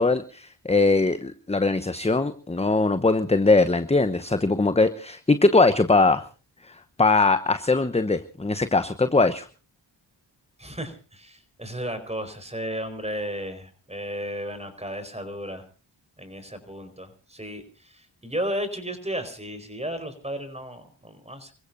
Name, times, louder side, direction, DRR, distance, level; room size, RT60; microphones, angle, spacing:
voice 1, 0.0-6.2 6.6-9.5, left 3 dB, 15° left, 11 dB, 1.0 m, -21 dB
voice 2, 10.6-15.6 16.2-17.6 17.9-21.5, equal, 15° right, 10 dB, 4.7 m, -34 dB
29.5 x 15.5 x 2.7 m, 0.36 s
cardioid pair, 45°, 48 cm